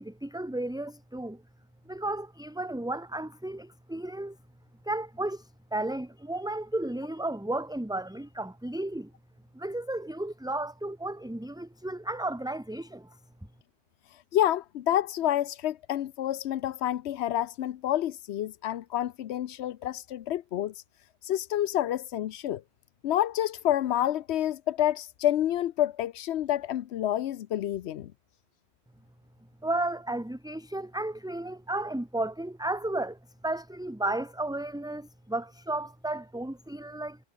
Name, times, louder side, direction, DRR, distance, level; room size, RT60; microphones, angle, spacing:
voice 1, 0.0-1.4 1.9-4.4 4.8-9.1 9.5-13.2 29.6-33.2 33.4-37.2, right 2 dB, 5° right, 1.1 m, -33 dB
voice 2, 14.1-20.8 21.2-22.6 23.0-28.1, left 12 dB, 80° left, 0.9 m, -28 dB
omnidirectional pair, 1.1 m